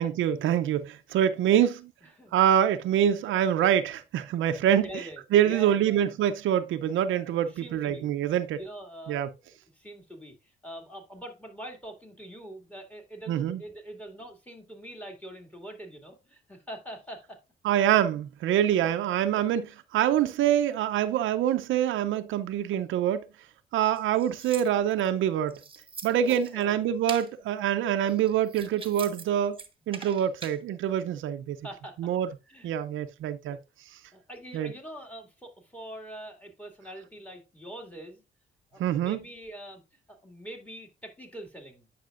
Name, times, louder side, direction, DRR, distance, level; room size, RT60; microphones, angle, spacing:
voice 1, 0.0-1.8 2.3-4.9 5.3-8.6 9.1-9.3 13.3-13.6 17.6-23.2 23.7-25.6 26.0-29.6 29.9-31.6 32.0-32.3 32.6-33.6 34.5-34.7 38.8-39.2, right 10 dB, 80° right, 0.6 m, -25 dB
voice 2, 2.0-2.3 4.7-6.0 6.9-8.1 8.5-9.4 9.7-17.4 26.2-26.9 28.0-28.4 31.6-32.0 32.5-32.7 33.5-33.6 34.1-38.2 38.7-39.8 40.1-41.9, right 1 dB, 5° left, 2.2 m, -44 dB
sound 1, 23.8-25.1 25.5-26.6 27.1-27.3 28.0-29.2 29.5-30.6, right 4 dB, 25° right, 1.2 m, -43 dB
9.3 x 5.8 x 2.4 m
cardioid pair, 90°, 20 cm